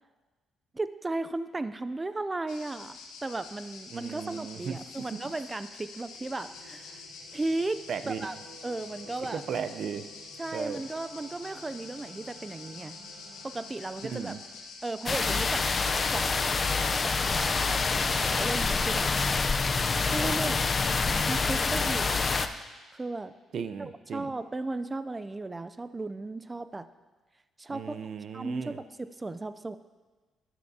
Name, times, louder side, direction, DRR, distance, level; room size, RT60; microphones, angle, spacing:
voice 1, 0.7-7.0 7.3-7.8 8.1-8.4 8.6-9.4 10.4-13.0 13.4-14.3 14.8-16.6 17.0-19.1 20.0-20.6 21.3-22.3 22.9-23.3 23.8-26.9 27.6-28.0 28.3-29.8, right 2 dB, 20° right, 12 dB, 0.4 m, -35 dB
sound 1, 2.5-19.0, left 4 dB, 85° left, 1.2 m, -47 dB
voice 2, 3.9-5.3 7.9-8.3 9.3-10.1 10.5-10.8 14.0-14.4 23.5-24.3 27.7-28.8, right 7 dB, 60° right, 11 dB, 0.6 m, -36 dB
sound 2, 6.2-14.5, right 3 dB, 90° right, 2.7 m, -53 dB
sound 3, 15.1-22.5, left 4 dB, 35° left, 0.5 m, -27 dB
12.0 x 11.0 x 2.8 m, 1.3 s
cardioid pair, 90°, 0 cm